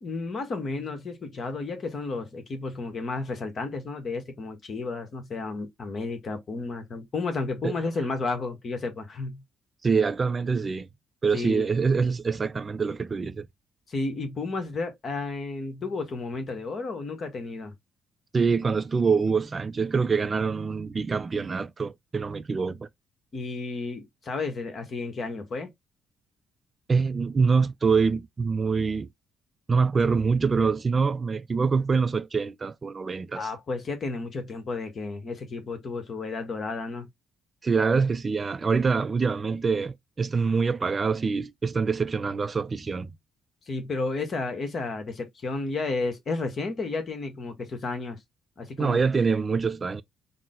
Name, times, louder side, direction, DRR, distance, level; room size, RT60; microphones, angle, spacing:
voice 1, 0.0-9.4 11.3-11.7 13.9-17.7 23.3-25.7 33.3-37.1 43.7-48.2 48.6-49.0, left 3 dB, 45° left, 1.0 m, -32 dB
voice 2, 9.8-10.9 11.2-13.5 18.3-22.9 26.9-29.1 29.7-33.5 37.6-43.1 48.8-50.0, right 5 dB, 35° right, 0.3 m, -25 dB
3.7 x 2.0 x 3.4 m
figure-of-eight pair, 45°, 0 cm